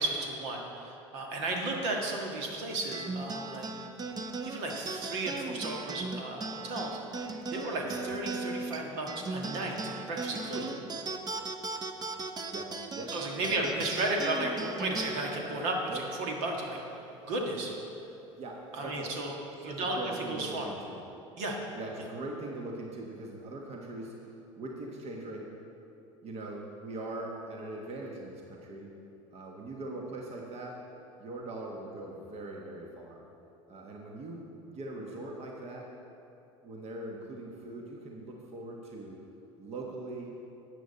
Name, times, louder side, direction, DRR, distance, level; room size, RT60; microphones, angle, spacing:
voice 1, 0.0-3.7 4.4-9.8 10.1-10.7 13.1-16.8 17.3-17.7 18.7-19.3 19.6-20.7 21.4-21.6, right 2 dB, 65° right, 0 dB, 1.6 m, -34 dB
sound 1, 2.9-17.7, right 3 dB, 25° right, 0.8 m, -38 dB
voice 2, 12.5-13.1 13.4-13.8 15.9-16.0 18.4-19.1 19.6-21.0 21.7-25.5 26.2-28.9 29.3-30.8 31.2-33.2 33.7-35.9 36.6-39.2 39.6-40.3, right 2 dB, 40° right, 0 dB, 1.3 m, -41 dB
12.5 x 8.5 x 4.1 m, 2.8 s
hypercardioid pair, 70°, 16 cm